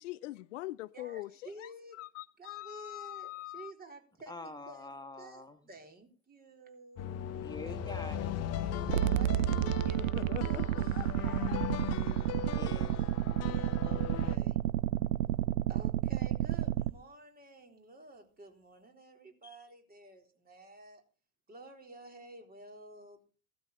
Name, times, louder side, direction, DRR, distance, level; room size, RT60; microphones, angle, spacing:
voice 1, 0.0-3.7 10.0-11.8, left 17 dB, 60° left, 0.7 m, -43 dB
voice 2, 0.9-2.0 2.4-4.9 5.2-7.8 8.3-11.6 13.4-14.6 15.7-21.0 21.5-23.2, right 1 dB, 20° right, 3.9 m, -52 dB
voice 3, 4.3-5.6 7.4-8.3 12.4-12.9 19.4-19.6, left 3 dB, 10° left, 2.4 m, -45 dB
sound 1, 7.0-14.4, left 9 dB, 35° left, 1.1 m, -38 dB
sound 2, 8.9-16.9, right 14 dB, 65° right, 0.7 m, -31 dB
17.0 x 12.5 x 4.1 m
figure-of-eight pair, 80°, 42 cm